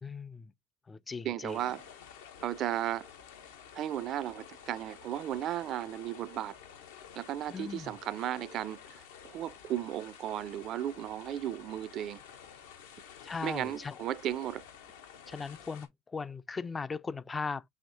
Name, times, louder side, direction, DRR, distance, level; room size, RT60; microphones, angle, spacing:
voice 1, 0.0-0.5 0.9-1.6 7.5-7.9 13.2-14.0 15.3-17.6, left 5 dB, 25° left, 0.3 m, -38 dB
voice 2, 1.2-1.8 2.4-3.1 3.7-6.6 7.2-12.2 13.4-14.6, right 12 dB, 50° right, 0.4 m, -35 dB
sound 1, 1.5-15.9, left 8 dB, 80° left, 0.9 m, -51 dB
6.4 x 2.9 x 2.6 m
hypercardioid pair, 85°, 0 cm